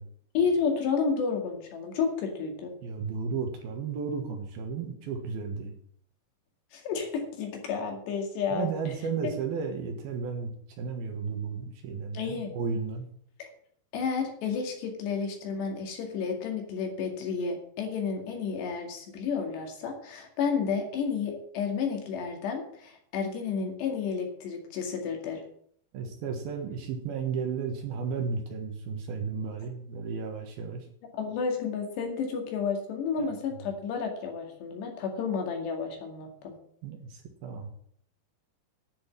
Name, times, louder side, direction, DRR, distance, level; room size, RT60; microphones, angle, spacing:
voice 1, 0.3-2.7 6.7-8.7 12.1-12.5 13.4-13.5 13.9-25.4 31.2-36.6, left 5 dB, 70° left, 2 dB, 4.3 m, -31 dB
voice 2, 2.8-5.7 8.5-10.5 10.8-13.1 25.9-30.9 33.2-33.3 36.8-37.7, right 5 dB, 65° right, 4 dB, 3.0 m, -33 dB
10.5 x 7.4 x 7.4 m, 0.64 s
omnidirectional pair, 5.1 m